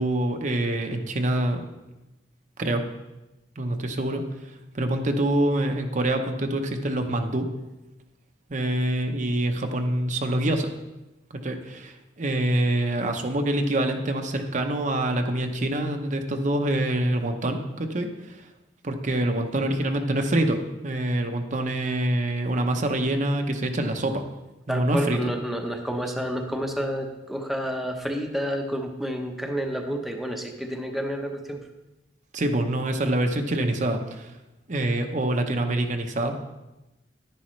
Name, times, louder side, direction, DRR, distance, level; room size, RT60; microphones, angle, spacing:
voice 1, 0.0-1.7 2.6-2.8 3.6-4.2 4.7-7.5 8.5-10.7 11.3-18.4 18.8-24.2 24.7-25.3 32.3-34.3 34.7-36.4, right 1 dB, 45° right, 5 dB, 0.8 m, -25 dB
voice 2, 24.7-31.6, equal, ahead, 2 dB, 0.8 m, -29 dB
10.5 x 10.0 x 3.2 m, 1.0 s
head